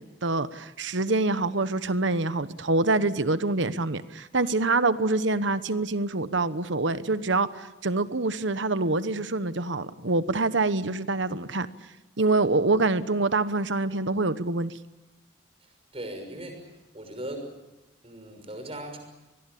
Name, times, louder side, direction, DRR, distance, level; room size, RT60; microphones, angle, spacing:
voice 1, 0.0-11.7 12.2-14.7, right 3 dB, 65° right, 1.1 m, -25 dB
voice 2, 15.9-16.7 16.9-17.5 18.0-19.0, right 1 dB, 30° right, 6.2 m, -38 dB
26.0 x 21.0 x 8.5 m
head